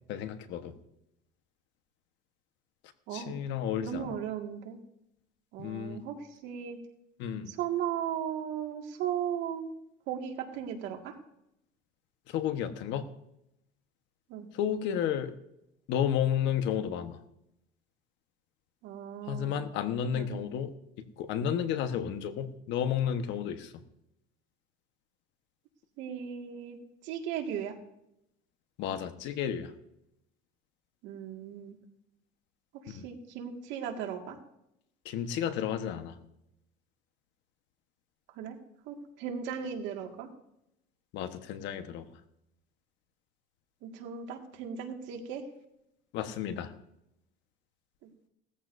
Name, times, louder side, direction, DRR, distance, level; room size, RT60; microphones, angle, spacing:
voice 1, 0.1-0.7 3.1-4.1 5.6-6.0 7.2-7.5 12.3-13.1 14.5-15.3 15.9-17.2 19.3-20.7 21.2-23.7 28.8-29.7 32.9-33.0 35.0-36.1 41.1-42.0 46.1-46.7, left 9 dB, 70° left, 8 dB, 1.3 m, -32 dB
voice 2, 3.1-3.4 3.8-4.8 5.5-6.8 7.5-9.7 10.1-11.2 14.3-14.5 18.8-19.7 20.1-20.4 26.0-26.8 27.0-27.8 31.0-31.8 32.9-34.4 38.3-38.6 38.9-40.3 43.8-45.4 48.0-48.1, right 8 dB, 75° right, 3 dB, 2.0 m, -36 dB
18.5 x 14.0 x 2.7 m, 0.81 s
cardioid pair, 125°, 20 cm